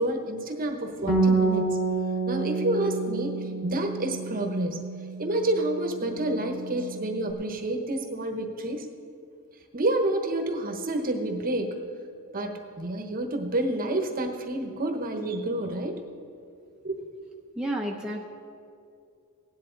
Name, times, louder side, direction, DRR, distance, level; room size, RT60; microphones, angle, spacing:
voice 1, 0.0-1.8 2.3-4.8 5.2-8.9 9.7-11.8 12.3-16.0 16.8-17.0, right 1 dB, 40° right, 4 dB, 1.0 m, -29 dB
Bass guitar, 1.1-7.3, right 3 dB, 25° left, 2.0 m, -29 dB
voice 2, 17.6-18.2, right 1 dB, 5° right, -2 dB, 0.7 m, -30 dB
17.0 x 10.0 x 3.9 m, 2.4 s
head